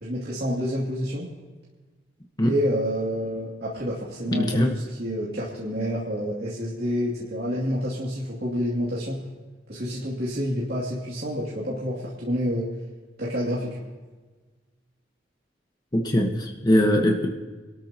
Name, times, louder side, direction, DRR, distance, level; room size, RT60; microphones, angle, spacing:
voice 1, 0.0-1.3 2.4-9.2 9.7-12.7 13.2-13.8, equal, 55° right, -7 dB, 2.6 m, -28 dB
voice 2, 4.3-4.7 15.9-17.3, equal, 20° left, 1 dB, 1.2 m, -21 dB
26.0 x 13.0 x 2.9 m, 1.3 s
head